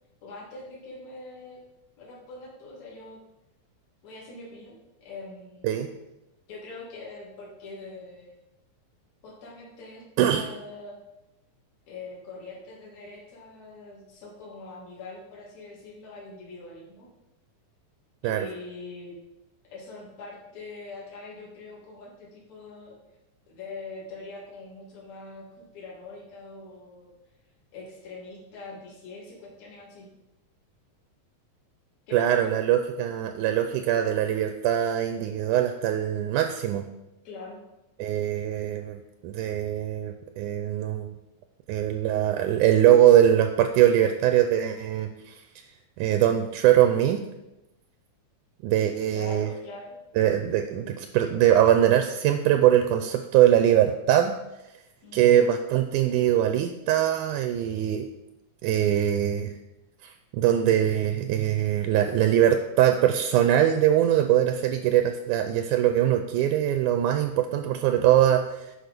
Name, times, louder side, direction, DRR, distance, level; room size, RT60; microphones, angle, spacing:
voice 1, 0.2-1.6 2.0-3.2 4.0-4.8 5.0-5.8 6.5-8.4 9.2-11.0 11.9-17.1 18.2-19.2 19.6-23.0 23.5-27.1 27.7-30.1 32.1-32.5 37.3-37.6 49.1-50.0 55.0-55.4, left 3 dB, 55° left, -4 dB, 3.4 m, -43 dB
voice 2, 32.1-36.8 38.0-41.2 41.7-45.4 46.0-47.2 48.6-49.5 50.2-54.3 55.1-58.1 58.6-59.5 60.0-68.7, right 11 dB, 80° right, 7 dB, 1.9 m, -22 dB
10.5 x 4.8 x 5.2 m, 0.94 s
omnidirectional pair, 4.0 m